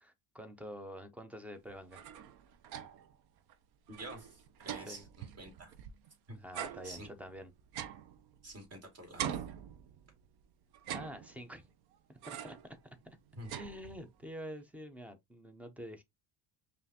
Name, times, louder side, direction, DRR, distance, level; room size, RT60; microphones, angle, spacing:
voice 1, 0.0-2.0 4.9-5.0 6.3-7.5 10.9-11.7 12.1-13.0 13.5-16.0, equal, 5° right, 0.4 m, -47 dB
sound 1, 1.7-3.2 3.5-3.6 3.9-6.1 6.5-8.8 9.2-10.3 10.7-11.7 12.2-12.7 13.1-14.2, right 10 dB, 60° right, 0.6 m, -44 dB
voice 2, 3.9-5.7 6.3-6.4 6.8-7.1 8.4-9.4 13.4-13.5, right 1 dB, 35° right, 2.1 m, -48 dB
5.3 x 2.5 x 2.7 m
cardioid pair, 145°, 42 cm